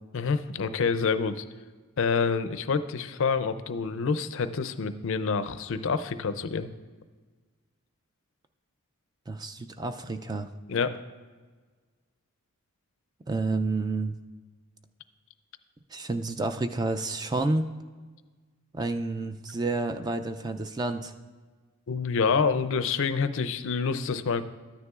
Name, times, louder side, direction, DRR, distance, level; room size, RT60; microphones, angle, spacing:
voice 1, 0.1-1.4 2.0-6.7 10.7-11.0 21.9-24.4, left 5 dB, 60° left, 11 dB, 0.4 m, -27 dB
voice 2, 9.3-10.5 13.3-14.1 15.9-17.7 18.7-21.1, right 2 dB, 20° right, 7 dB, 0.3 m, -30 dB
13.0 x 9.5 x 2.4 m, 1.4 s
head